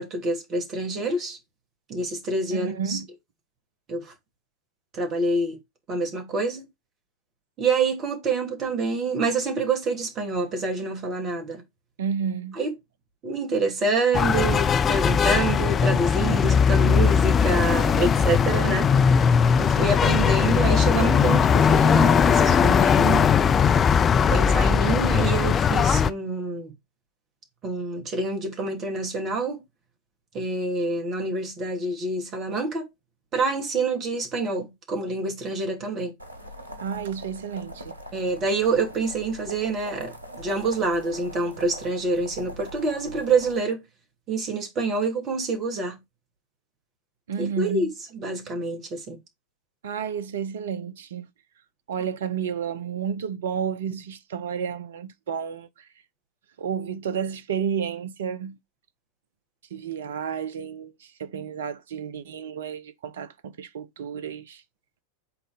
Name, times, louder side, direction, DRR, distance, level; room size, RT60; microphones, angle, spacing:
voice 1, 0.0-1.4 1.9-3.0 3.9-4.1 4.9-5.6 5.9-6.6 7.6-11.6 12.6-12.7 13.2-19.3 19.6-23.3 24.3-26.7 27.6-29.6 30.3-32.9 33.3-36.1 38.1-40.1 40.4-43.8 44.3-46.0 47.4-49.2, right 3 dB, 30° right, 2.5 m, -27 dB
voice 2, 2.5-3.1 12.0-12.6 36.8-37.9 47.3-47.9 49.8-51.3 51.9-55.7 56.6-58.6 59.7-64.6, right 7 dB, 60° right, 0.7 m, -31 dB
sound 1, 14.1-26.1, left 6 dB, 25° left, 0.5 m, -19 dB
sound 2, 36.2-43.6, equal, 80° right, 1.2 m, -42 dB
5.9 x 4.0 x 5.0 m
figure-of-eight pair, 90°, 0 cm